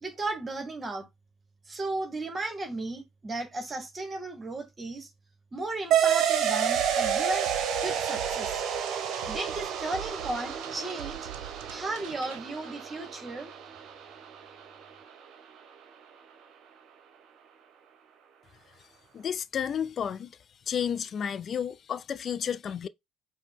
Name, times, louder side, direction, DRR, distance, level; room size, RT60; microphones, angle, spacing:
voice 1, 0.0-1.1 1.7-5.1 5.5-7.5 7.8-8.6 9.3-11.3 11.7-13.5, right 2 dB, 30° right, 1.2 m, -35 dB
sound 1, 5.9-14.9, right 8 dB, 55° right, 0.8 m, -30 dB
sound 2, 6.8-12.4, right 13 dB, 80° right, 0.4 m, -45 dB
voice 2, 19.1-20.3 20.7-22.9, left 8 dB, 45° left, 0.3 m, -31 dB
4.8 x 2.1 x 3.6 m
hypercardioid pair, 60°, 0 cm